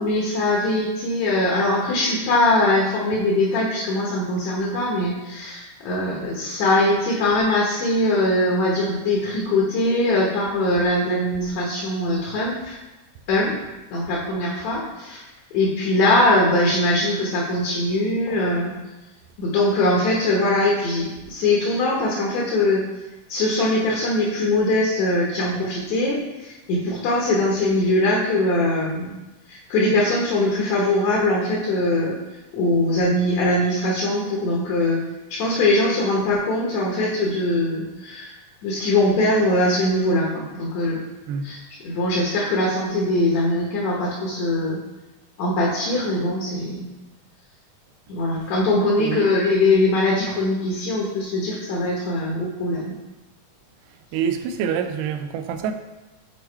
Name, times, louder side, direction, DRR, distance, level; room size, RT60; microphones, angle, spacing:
voice 1, 0.0-12.8 13.3-13.5 13.9-15.2 15.5-18.7 19.4-22.8 23.3-29.1 29.5-32.2 32.5-35.0 35.3-38.3 38.6-41.0 41.4-41.6 41.8-44.8 45.4-46.9 48.1-52.9, left 1 dB, 65° left, -3 dB, 2.1 m, -21 dB
voice 2, 41.3-41.6 49.0-49.3 54.1-55.7, right 7 dB, 85° right, 8 dB, 2.2 m, -26 dB
8.4 x 2.9 x 4.5 m, 1.0 s
omnidirectional pair, 3.8 m